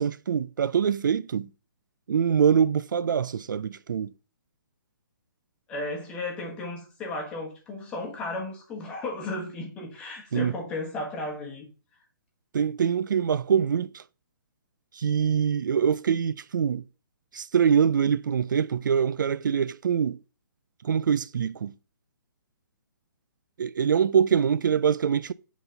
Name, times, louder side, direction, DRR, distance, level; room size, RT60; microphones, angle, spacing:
voice 1, 0.0-1.5 2.1-4.1 10.3-10.5 12.5-14.0 14.9-16.8 17.3-20.2 20.8-21.7 23.6-25.3, right 7 dB, 65° right, 0.4 m, -24 dB
voice 2, 5.7-11.7, left 2 dB, 10° left, 1.3 m, -34 dB
8.2 x 4.0 x 3.9 m
hypercardioid pair, 170°, 11 cm